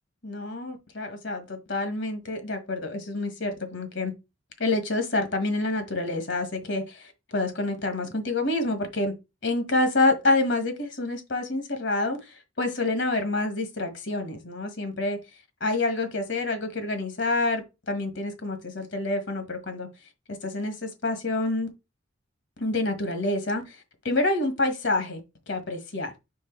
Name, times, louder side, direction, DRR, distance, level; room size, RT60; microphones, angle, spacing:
voice 1, 0.2-4.1 4.6-9.1 9.4-15.2 15.6-19.9 20.4-21.7 22.6-23.8 24.0-25.2 25.5-26.1, left 2 dB, 65° left, 1.5 m, -27 dB
4.6 x 4.6 x 4.5 m
head